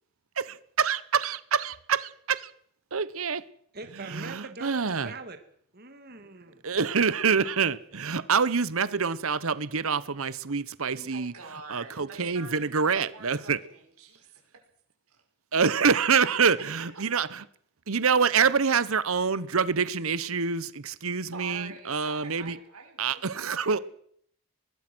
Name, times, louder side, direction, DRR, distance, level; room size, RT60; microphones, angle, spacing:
voice 1, 0.4-2.5 2.9-3.4 4.1-5.1 6.6-11.3 11.7-13.6 15.5-17.4 17.9-22.6 23.0-23.8, right 5 dB, 70° right, 1.0 m, -26 dB
voice 2, 3.7-5.4 5.7-6.6, right 3 dB, 45° right, 2.1 m, -42 dB
voice 3, 10.9-14.4 15.1-15.2 16.1-16.5 16.8-17.0 21.3-23.8, right 4 dB, 85° right, 6.0 m, -46 dB
24.0 x 20.5 x 6.2 m
head